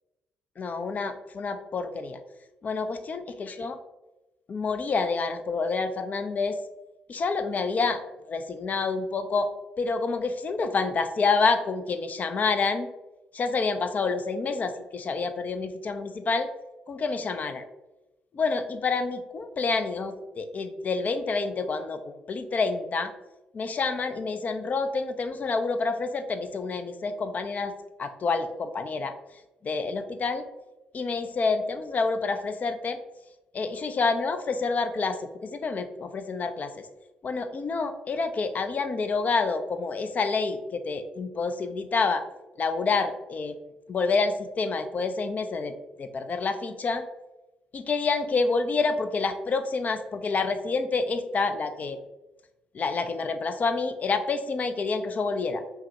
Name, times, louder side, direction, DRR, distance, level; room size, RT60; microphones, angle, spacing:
voice 1, 0.6-2.2 2.6-3.8 4.5-6.6 7.1-8.0 8.3-12.9 13.3-16.5 16.9-17.6 18.3-23.1 23.5-27.7 28.0-29.1 29.6-30.4 30.9-33.0 33.5-36.9 37.2-42.2 42.6-43.6 43.9-45.7 46.0-47.0 47.7-52.0 52.7-55.6, left 4 dB, 40° left, 9 dB, 0.4 m, -28 dB
5.6 x 2.1 x 2.8 m, 0.99 s
figure-of-eight pair, 45°, 4 cm